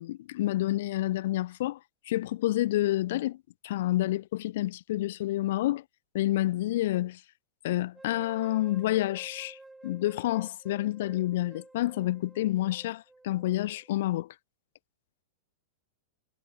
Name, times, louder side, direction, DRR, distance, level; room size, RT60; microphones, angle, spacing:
voice 1, 0.0-1.8 2.1-3.4 3.6-5.8 6.1-7.2 7.6-9.6 9.8-14.3, left 15 dB, 60° left, 0.5 m, -29 dB
sound 1, 7.9-14.0, right 2 dB, 5° right, 3.8 m, -52 dB
supercardioid pair, 160°, 0 cm